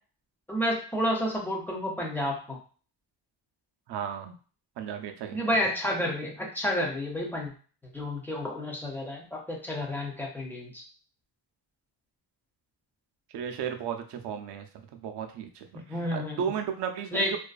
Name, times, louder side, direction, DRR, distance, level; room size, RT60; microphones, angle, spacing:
voice 1, 0.5-2.6 5.3-7.5 7.9-10.8 15.9-16.4 17.1-17.3, equal, 5° left, -2 dB, 0.3 m, -30 dB
voice 2, 3.9-4.4 4.8-5.5 13.3-14.7 14.9-17.4, right 8 dB, 65° right, 5 dB, 0.5 m, -34 dB
2.4 x 2.3 x 2.3 m, 0.40 s
cardioid pair, 165°, 44 cm